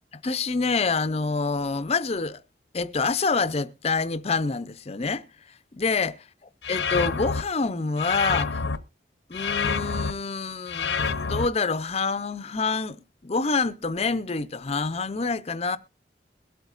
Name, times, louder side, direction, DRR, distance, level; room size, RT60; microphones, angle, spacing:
voice 1, 0.1-2.4 2.7-5.2 5.7-6.2 6.7-8.6 9.3-15.8, left 4 dB, 35° left, 0.6 m, -27 dB
sound 1, 6.6-7.4 8.0-8.8 9.3-10.1 10.7-11.5, left 5 dB, 80° left, 0.8 m, -27 dB
22.0 x 8.1 x 2.5 m
head